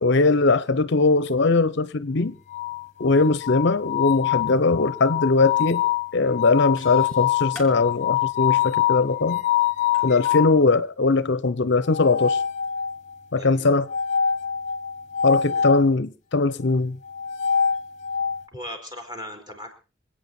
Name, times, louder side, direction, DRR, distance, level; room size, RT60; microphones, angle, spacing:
voice 1, 0.0-2.3 3.0-5.8 6.1-9.4 10.0-12.4 13.3-13.9 15.2-17.0, left 3 dB, 60° left, 0.7 m, -20 dB
sound 1, 2.5-10.6 11.9-13.1 13.9-15.9 17.1-18.4, left 9 dB, 35° left, 0.9 m, -25 dB
sound 2, 5.7-5.8 6.0-6.4 6.8-10.5, equal, ahead, 4.0 m, -44 dB
voice 2, 13.3-13.7 15.4-15.7 18.5-19.7, left 1 dB, 20° right, 4.3 m, -38 dB
26.0 x 8.8 x 4.3 m
head